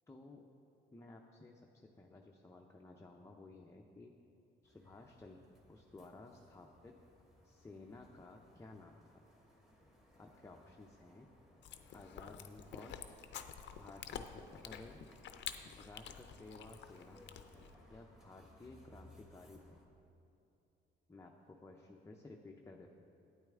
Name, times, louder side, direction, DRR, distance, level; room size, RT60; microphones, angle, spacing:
voice 1, 0.1-0.5 0.9-4.1 4.6-7.0 7.4-9.2 10.2-11.3 11.9-13.0 13.8-15.0 15.8-17.2 17.9-19.8 21.1-22.9, left 2 dB, 15° left, 1 dB, 0.5 m, -55 dB
sound 1, 4.6-19.9, left 1 dB, ahead, 1.4 m, -64 dB
Chewing mastication, 11.6-17.7, left 8 dB, 65° left, 0.5 m, -49 dB
9.1 x 8.8 x 3.6 m, 2.8 s
cardioid pair, 90°, 20 cm